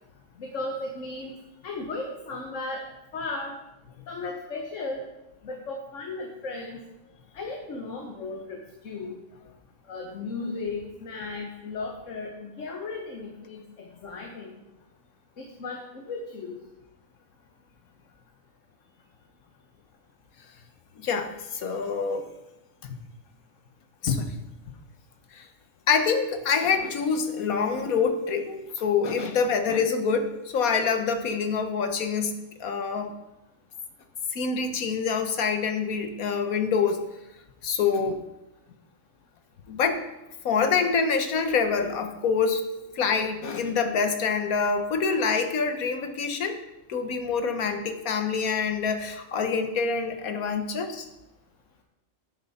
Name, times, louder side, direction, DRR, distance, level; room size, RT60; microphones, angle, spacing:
voice 1, 0.4-1.3 1.6-2.8 3.1-3.5 4.1-5.0 5.4-6.8 7.3-8.6 8.8-9.2 9.9-14.5 15.4-16.6, left 3 dB, 65° left, 2 dB, 1.5 m, -35 dB
voice 2, 21.0-22.3 22.8-22.9 24.0-24.4 25.3-25.5 25.9-33.1 34.3-37.0 37.6-38.2 39.7-40.0 40.4-42.7 42.9-46.6 46.9-51.1, left 5 dB, 85° left, 7 dB, 1.5 m, -26 dB
10.5 x 9.6 x 4.2 m, 0.97 s
omnidirectional pair, 1.5 m